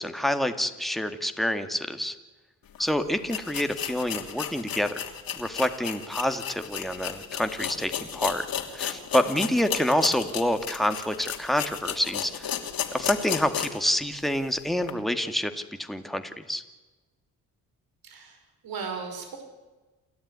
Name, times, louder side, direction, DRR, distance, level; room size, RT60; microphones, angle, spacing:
voice 1, 0.0-2.2 2.8-5.0 5.3-8.5 8.7-12.6 12.9-15.5 15.8-16.6, left 1 dB, ahead, 7 dB, 2.1 m, -27 dB
sound 1, 2.7-2.8 3.3-13.9 14.3-14.4 14.8-14.9, left 9 dB, 65° left, 2.9 m, -34 dB
voice 2, 18.0-18.4 18.6-19.4, right 5 dB, 70° right, 4 dB, 5.4 m, -36 dB
29.0 x 13.0 x 9.7 m, 1.2 s
cardioid pair, 85°, 37 cm